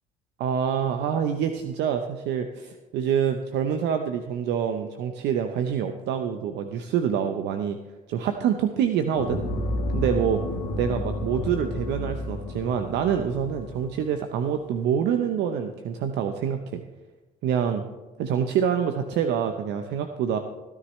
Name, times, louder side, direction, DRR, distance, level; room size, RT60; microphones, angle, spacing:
voice 1, 0.4-7.8 8.1-9.4 9.9-10.4 10.7-16.8 17.4-17.8 18.2-20.4, right 8 dB, 70° right, 7 dB, 0.8 m, -26 dB
sound 1, 9.1-13.9, left 1 dB, 80° left, 2.2 m, -31 dB
16.0 x 10.0 x 3.2 m, 1.2 s
supercardioid pair, 70°, 19 cm